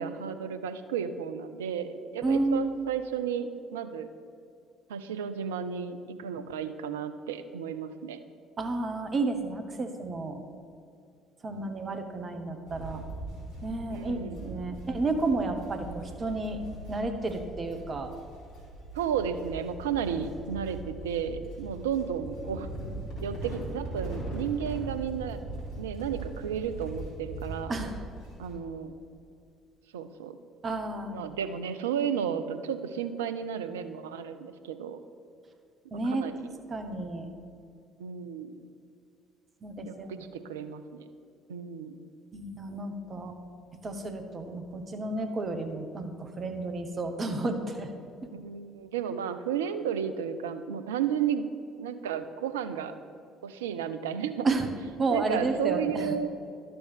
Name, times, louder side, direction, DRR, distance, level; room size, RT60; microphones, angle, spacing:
voice 1, 0.0-4.1 4.9-8.2 13.9-14.8 18.9-22.7 23.2-25.4 25.8-27.7 28.4-28.9 29.9-30.4 31.1-35.0 35.8-36.5 38.0-38.5 39.8-41.1 41.5-42.0 48.3-51.5 51.8-53.0 53.4-54.5 55.1-56.3, right 8 dB, 75° right, 10 dB, 0.4 m, -33 dB
voice 2, 2.2-2.8 8.6-10.4 11.4-13.0 13.6-16.6 16.9-18.1 27.7-28.0 30.6-31.3 35.9-36.3 36.7-37.3 39.6-40.2 42.3-43.3 43.8-47.9 54.4-54.7 55.0-56.1, right 2 dB, 35° right, 6 dB, 1.0 m, -31 dB
sound 1, 12.7-28.5, right 2 dB, 70° left, 2.2 m, -40 dB
11.5 x 6.9 x 3.5 m, 2.5 s
figure-of-eight pair, 50°, 0 cm